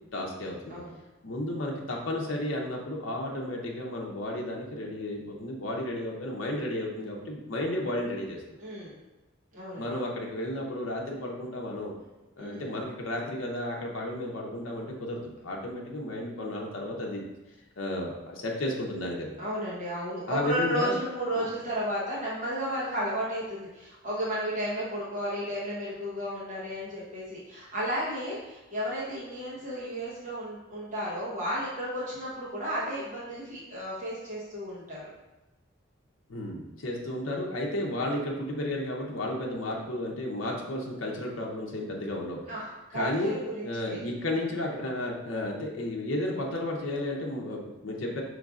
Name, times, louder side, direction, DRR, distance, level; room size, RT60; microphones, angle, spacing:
voice 1, 0.1-0.8 1.2-8.4 9.8-11.9 12.4-17.2 17.8-19.3 20.3-20.9 21.3-21.5 36.3-42.4 42.9-43.4 43.6-48.2, left 1 dB, 75° left, -1 dB, 0.7 m, -33 dB
voice 2, 8.6-8.9 9.5-9.9 12.4-12.7 19.4-35.1 42.5-43.1 43.4-44.0, equal, 40° right, -7 dB, 1.0 m, -33 dB
5.1 x 3.2 x 2.4 m, 1.0 s
head